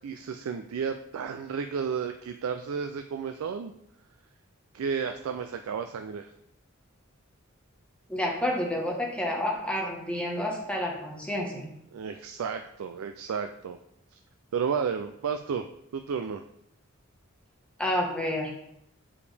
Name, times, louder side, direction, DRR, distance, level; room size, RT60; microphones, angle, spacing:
voice 1, 0.0-3.7 4.7-6.3 11.9-13.8 14.5-15.7 15.9-16.4, right 6 dB, 85° right, 7 dB, 0.4 m, -32 dB
voice 2, 8.1-11.7 17.8-18.5, left 1 dB, 5° left, -1 dB, 1.2 m, -29 dB
7.0 x 4.9 x 3.3 m, 0.76 s
head